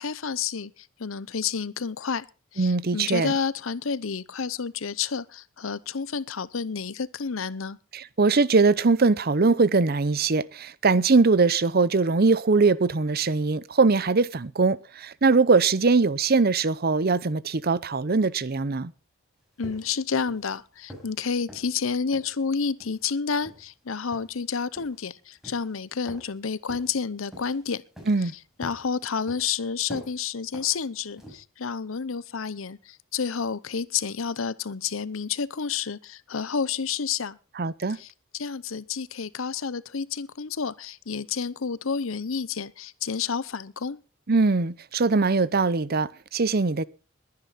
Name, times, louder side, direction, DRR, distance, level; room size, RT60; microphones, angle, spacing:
voice 1, 0.0-2.3 2.5-7.8 19.6-27.8 28.6-37.4 37.9-44.0, left 6 dB, 80° left, 0.8 m, -30 dB
voice 2, 2.6-3.3 7.9-18.9 28.1-28.3 37.6-38.0 44.3-46.8, right 4 dB, 50° right, 0.7 m, -21 dB
sound 1, 19.6-20.0 20.3-20.5 20.9-21.1 21.5-21.7 22.1-22.3 22.8-23.0 23.4-23.6 24.1-24.4 24.8-25.0 25.4-25.7 26.1-26.3 26.7-26.9 27.3-27.6 28.0-28.3 28.6-28.9 29.3-29.5 29.9-30.2 30.5-30.8 31.2-31.4, equal, ahead, 5.3 m, -44 dB
21.5 x 9.6 x 4.1 m
head